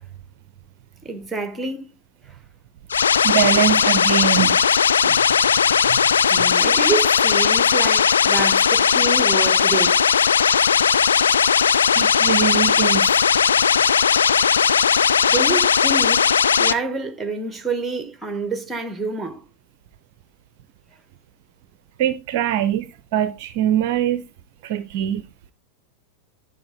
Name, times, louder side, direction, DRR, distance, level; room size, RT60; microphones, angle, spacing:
voice 1, 1.0-1.9 2.3-2.4 6.3-10.1 15.3-16.3 16.6-19.4, right 4 dB, 10° right, 1.4 m, -27 dB
sound 1, 2.9-16.7, left 7 dB, 70° left, 0.4 m, -17 dB
voice 2, 3.2-4.6 5.0-5.2 5.9-6.0 6.4-6.5 11.9-13.1 22.0-24.2 24.6-25.2, right 11 dB, 50° right, 0.6 m, -22 dB
10.5 x 4.7 x 3.9 m
figure-of-eight pair, 90°, 0 cm